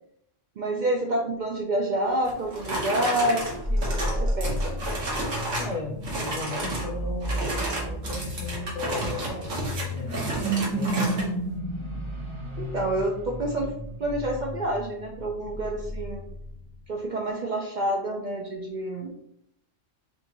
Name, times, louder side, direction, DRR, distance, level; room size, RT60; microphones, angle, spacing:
voice 1, 0.6-4.8 12.6-13.7 14.0-16.2 16.9-19.2, right 1 dB, 50° right, 0 dB, 0.6 m, -28 dB
sound 1, 2.2-5.8 6.0-6.9 7.2-11.3, right 1 dB, 85° right, 1.6 m, -31 dB
sound 2, 3.6-16.9, right 1 dB, 25° right, 0.9 m, -32 dB
voice 2, 5.6-9.5 9.9-10.2 10.7-11.2, left 3 dB, 40° left, -2 dB, 0.5 m, -36 dB
6.3 x 2.5 x 2.9 m, 0.74 s
omnidirectional pair, 1.3 m